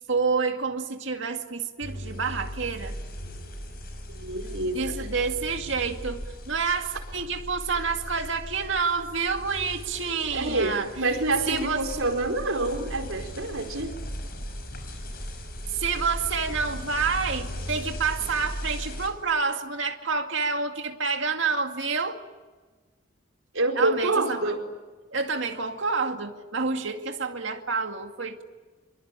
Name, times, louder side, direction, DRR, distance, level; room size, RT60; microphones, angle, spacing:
voice 1, 0.1-2.9 4.7-11.2 11.5-11.9 15.7-22.2 23.8-24.6 25.1-28.4, right 5 dB, 65° right, 4 dB, 2.3 m, -28 dB
sound 1, 1.8-19.1, equal, 45° left, 6.2 m, -37 dB
voice 2, 4.1-4.9 10.3-13.9 23.5-24.6, right 2 dB, 85° right, 3 dB, 4.7 m, -27 dB
25.5 x 24.0 x 8.9 m, 1.3 s
head